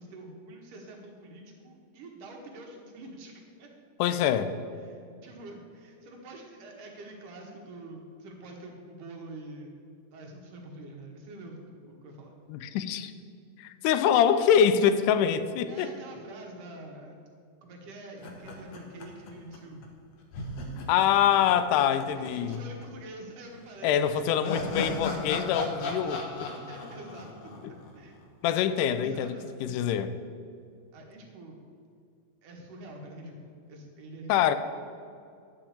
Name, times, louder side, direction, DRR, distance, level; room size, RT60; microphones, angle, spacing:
voice 1, 0.0-3.3 3.6-3.7 4.7-9.7 10.1-12.3 15.7-17.2 17.6-19.9 22.2-25.0 26.0-28.2 28.5-29.8 30.9-31.6 32.4-34.6, right 2 dB, 85° right, 0 dB, 3.1 m, -46 dB
voice 2, 4.0-4.5 12.5-13.1 13.6-15.9 20.9-22.6 23.8-26.5 27.6-27.7 28.4-30.1 34.3-34.5, left 9 dB, 85° left, 12 dB, 2.2 m, -25 dB
sound 1, 18.2-19.6 19.8-19.9 20.3-22.6 22.8-22.9 23.9-28.2, left 2 dB, 65° left, 2.1 m, -36 dB
11.5 x 6.0 x 8.4 m, 2.3 s
omnidirectional pair, 3.6 m